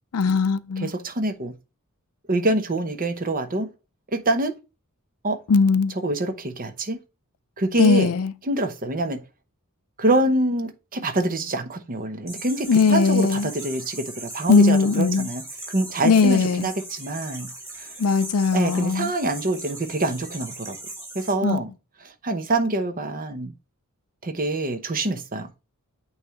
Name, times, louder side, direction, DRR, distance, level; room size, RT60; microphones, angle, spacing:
voice 1, 0.1-0.9 5.5-5.9 7.8-8.3 12.7-13.5 14.5-15.3 16.0-16.7 18.0-19.1 21.4-21.6, left 4 dB, 80° left, 0.5 m, -19 dB
voice 2, 0.8-1.5 2.3-3.7 4.1-4.5 5.2-5.4 5.9-7.0 7.6-8.1 8.4-9.2 10.0-15.4 15.7-17.5 17.8-17.9 18.5-20.8 21.1-21.7 22.2-23.5 24.2-25.5, right 2 dB, 40° right, 0.9 m, -25 dB
sound 1, 12.3-21.3, right 2 dB, 10° right, 3.3 m, -39 dB
8.7 x 3.2 x 3.6 m
head